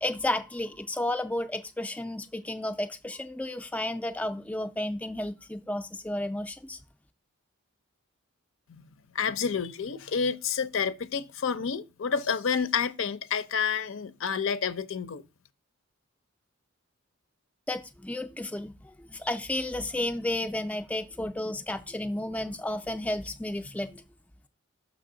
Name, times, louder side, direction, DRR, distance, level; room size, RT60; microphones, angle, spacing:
voice 1, 0.0-6.8 17.7-18.7 19.1-24.0, left 1 dB, 5° left, 0.4 m, -32 dB
voice 2, 9.1-15.2, left 6 dB, 65° left, 0.5 m, -29 dB
6.0 x 6.0 x 3.7 m
head